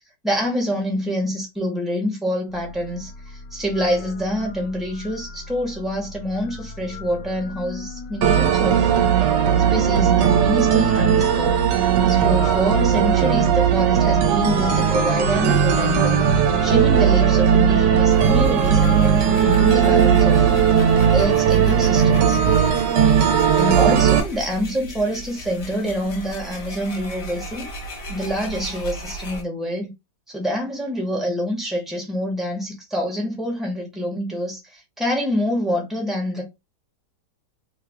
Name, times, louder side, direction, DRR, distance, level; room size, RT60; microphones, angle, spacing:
voice 1, 0.2-8.9 9.7-11.6 12.0-16.2 16.6-20.5 21.1-22.4 23.5-27.7 28.1-29.9 30.3-36.4, equal, ahead, 0.8 m, -26 dB
sound 1, 2.5-21.3, left 3 dB, 85° left, 1.3 m, -34 dB
sound 2, 8.2-24.2, right 8 dB, 80° right, 1.3 m, -17 dB
sound 3, 18.1-29.4, right 2 dB, 60° left, 1.1 m, -34 dB
3.3 x 2.3 x 3.5 m
omnidirectional pair, 1.9 m